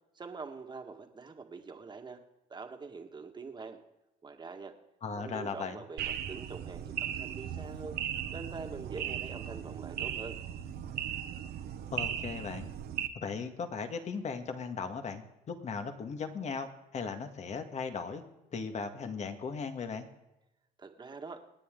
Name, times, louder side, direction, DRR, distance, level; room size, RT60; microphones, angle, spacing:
voice 1, 0.1-2.2 2.5-3.8 4.2-4.7 5.1-8.0 8.3-10.4 20.8-21.4, right 4 dB, 25° right, 5 dB, 1.8 m, -44 dB
voice 2, 5.0-5.8 11.9-12.7 13.2-18.2 18.5-20.1, left 5 dB, 45° left, 7 dB, 1.7 m, -37 dB
sound 1, 6.0-13.1, right 10 dB, 70° right, 1.2 m, -37 dB
26.5 x 9.8 x 3.8 m, 0.96 s
cardioid pair, 110°, 17 cm